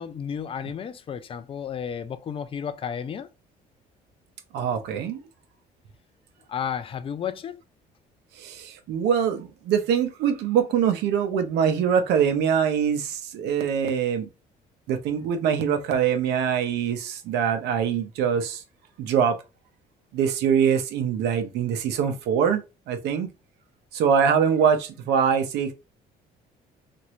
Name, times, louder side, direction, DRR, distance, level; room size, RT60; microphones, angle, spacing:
voice 1, 0.0-3.3 6.5-7.6, left 8 dB, 35° left, 0.3 m, -32 dB
voice 2, 4.5-5.2 8.4-14.3 14.9-18.6 19.0-19.4 20.1-22.6 22.9-23.3 23.9-25.7, right 7 dB, 80° right, 0.7 m, -23 dB
3.0 x 2.6 x 2.9 m
cardioid pair, 110°, 17 cm